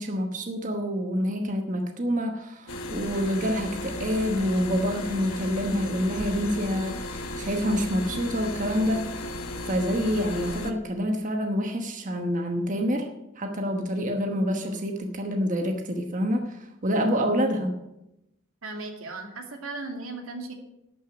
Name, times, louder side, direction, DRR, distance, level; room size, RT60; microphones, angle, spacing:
voice 1, 0.0-9.3 9.6-13.1 13.4-17.7, equal, 40° right, 4 dB, 1.1 m, -27 dB
sound 1, 2.7-10.7, left 1 dB, 85° left, 1.2 m, -35 dB
voice 2, 18.6-20.5, right 3 dB, 90° right, 3 dB, 2.3 m, -36 dB
12.0 x 6.5 x 8.0 m, 0.89 s
head